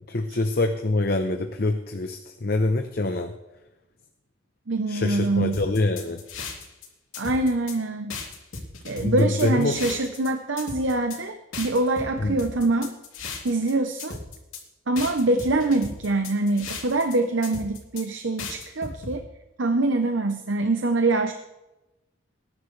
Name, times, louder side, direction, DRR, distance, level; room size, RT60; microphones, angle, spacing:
voice 1, 0.1-3.3 4.9-6.2 9.0-9.8 12.2-12.4, left 2 dB, 45° left, 6 dB, 0.8 m, -25 dB
voice 2, 4.7-5.6 7.2-8.2 8.9-12.9 13.4-14.2 14.9-19.2 19.6-21.3, right 2 dB, 65° right, 7 dB, 0.8 m, -24 dB
sound 1, 5.5-6.9 7.1-7.8 8.1-10.3 10.6-11.2 11.5-13.7 14.0-14.6 15.0-17.1 17.4-18.0 18.4-19.1, left 4 dB, 85° left, 3.0 m, -36 dB
20.5 x 11.0 x 3.2 m, 0.98 s
head